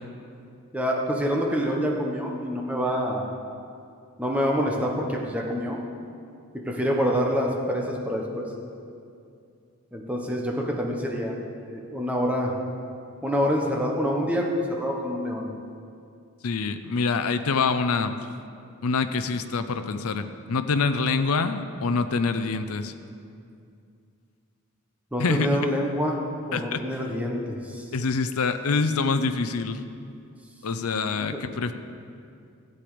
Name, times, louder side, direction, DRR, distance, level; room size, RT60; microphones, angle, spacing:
voice 1, 0.7-3.3 4.2-5.8 6.6-8.5 9.9-11.4 11.7-12.5 13.2-15.4 25.1-26.2 26.5-27.8, equal, 5° right, -1 dB, 1.2 m, -26 dB
voice 2, 16.4-18.1 18.8-22.9 25.2-25.5 26.5-26.8 27.9-29.8 30.6-31.7, left 4 dB, 80° left, 9 dB, 0.6 m, -25 dB
13.0 x 8.7 x 5.1 m, 2.4 s
head